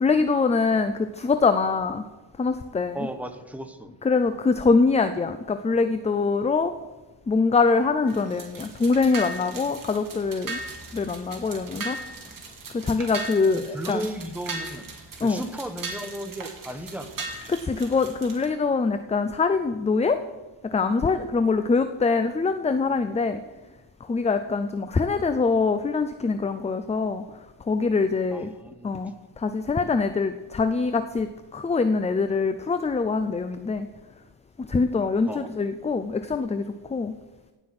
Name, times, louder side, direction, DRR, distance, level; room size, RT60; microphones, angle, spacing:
voice 1, 0.0-2.1 2.4-3.1 4.0-6.7 7.3-10.6 10.9-12.0 12.7-14.0 15.2-15.4 17.5-20.2 20.6-23.4 24.1-27.2 27.7-28.5 28.8-33.9 34.6-37.2, left 4 dB, 15° left, 10 dB, 0.4 m, -24 dB
voice 2, 2.9-3.9 13.5-14.9 15.2-17.3 28.3-29.1 35.3-35.5, right 1 dB, 5° right, 7 dB, 1.0 m, -35 dB
sound 1, 8.1-18.5, right 3 dB, 40° right, 2.7 m, -38 dB
17.0 x 6.1 x 7.7 m, 1.2 s
cardioid pair, 125°, 48 cm